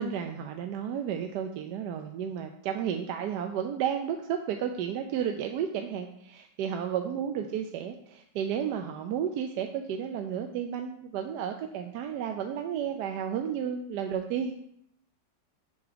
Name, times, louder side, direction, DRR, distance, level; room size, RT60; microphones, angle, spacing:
voice 1, 0.0-14.5, right 8 dB, 80° right, 5 dB, 1.1 m, -32 dB
7.1 x 4.7 x 5.0 m, 0.72 s
omnidirectional pair, 1.8 m